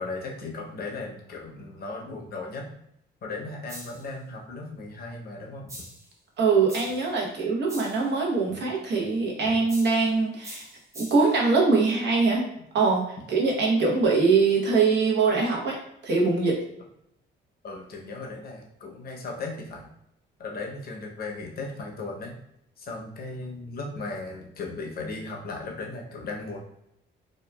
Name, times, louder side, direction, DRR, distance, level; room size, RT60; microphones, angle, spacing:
voice 1, 0.0-2.7 3.2-5.7 8.5-8.6 9.4-9.6 17.6-19.9 20.4-22.4 22.8-26.6, left 3 dB, 50° left, 0 dB, 0.7 m, -36 dB
sound 1, 3.7-4.1 5.7-6.1 6.7-7.1 7.7-8.1 9.7-10.1 10.4-11.4, equal, 15° right, 0.8 m, -43 dB
voice 2, 6.4-10.6 11.0-12.4 12.7-13.0 13.3-15.8 16.0-16.6, right 4 dB, 60° right, -1 dB, 0.9 m, -22 dB
2.9 x 2.2 x 2.2 m, 0.78 s
cardioid pair, 90°, 20 cm